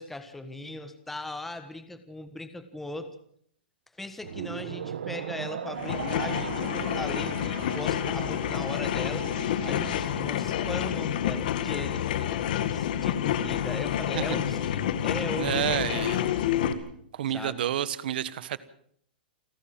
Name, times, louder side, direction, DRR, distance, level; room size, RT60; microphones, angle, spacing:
voice 1, 0.0-3.1 4.0-9.3 9.6-15.7 17.3-17.7, left 2 dB, 5° left, 9 dB, 1.4 m, -39 dB
sound 1, 4.2-10.8, right 8 dB, 90° right, 1.6 m, -38 dB
sound 2, 5.7-16.7, left 10 dB, 55° left, 1.9 m, -29 dB
voice 2, 15.4-16.3 17.1-18.6, right 11 dB, 65° right, 17 dB, 1.3 m, -29 dB
29.0 x 11.5 x 7.7 m, 0.64 s
hypercardioid pair, 165°, 6 cm